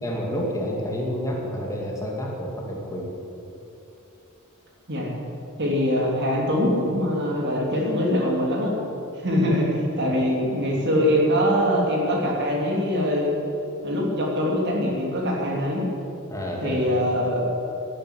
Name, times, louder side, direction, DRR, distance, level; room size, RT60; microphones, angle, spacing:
voice 1, 0.0-3.1 16.3-16.8, equal, 15° left, -1 dB, 2.3 m, -29 dB
voice 2, 5.6-8.7 9.2-13.3 13.8-15.8 16.6-17.5, equal, 55° right, -2 dB, 3.3 m, -23 dB
12.5 x 9.9 x 9.9 m, 2.8 s
head